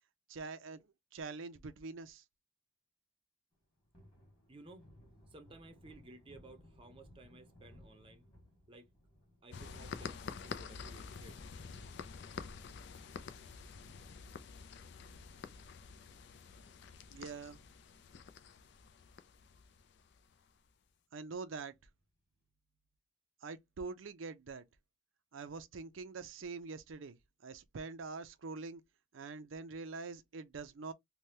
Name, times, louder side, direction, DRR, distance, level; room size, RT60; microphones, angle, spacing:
voice 1, 0.3-0.9 1.1-2.2 17.1-17.6 21.1-21.7 23.4-24.6 25.3-27.2 27.4-28.8 29.1-30.9, right 4 dB, 75° right, 0.5 m, -44 dB
Thunder, 3.5-14.3 14.6-14.7 15.1-16.6 16.9-17.0 17.4-18.2 18.6-18.7 19.0-19.1 21.5-22.0, left 1 dB, 25° left, 1.6 m, -63 dB
voice 2, 4.5-4.8 5.3-8.2 8.7-8.9 9.4-11.4, right 2 dB, 25° right, 0.6 m, -56 dB
sound 1, 9.5-20.7, left 5 dB, 60° left, 0.4 m, -48 dB
3.3 x 2.2 x 2.7 m
head